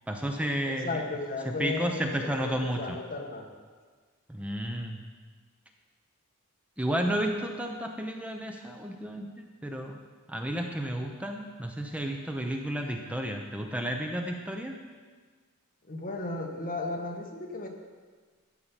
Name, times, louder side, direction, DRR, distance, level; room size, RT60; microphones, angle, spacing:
voice 1, 0.1-1.0 1.4-3.0 4.3-5.0 6.8-10.0 10.3-14.7, right 1 dB, 5° right, 3 dB, 0.6 m, -32 dB
voice 2, 0.7-3.5 15.9-17.7, left 2 dB, 40° left, 2 dB, 1.4 m, -35 dB
13.0 x 8.7 x 5.6 m, 1.5 s
head